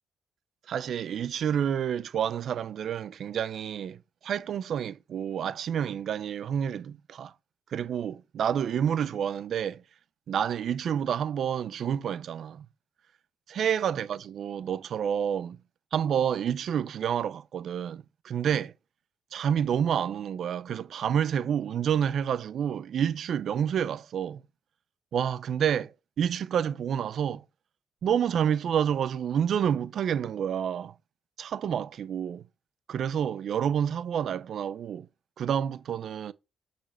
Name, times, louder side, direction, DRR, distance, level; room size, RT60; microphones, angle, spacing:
voice 1, 0.7-7.3 7.7-9.8 10.3-12.7 13.5-15.6 15.9-18.7 19.3-24.4 25.1-27.4 28.0-30.9 31.4-32.4 32.9-35.1 35.4-36.3, right 8 dB, 65° right, 0.7 m, -29 dB
7.0 x 6.1 x 6.5 m
cardioid pair, 90°, 0 cm